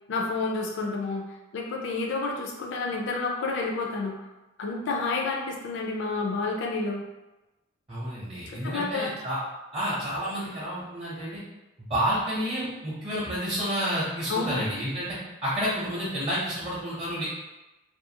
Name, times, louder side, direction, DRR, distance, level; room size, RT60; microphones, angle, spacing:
voice 1, 0.1-1.3 1.5-4.1 4.6-7.0 8.5-9.1 14.3-14.6, left 3 dB, 60° left, 0 dB, 0.4 m, -29 dB
voice 2, 7.9-9.4 9.7-11.4 11.9-17.2, equal, 25° right, -9 dB, 0.6 m, -30 dB
2.4 x 2.3 x 2.8 m, 1.1 s
head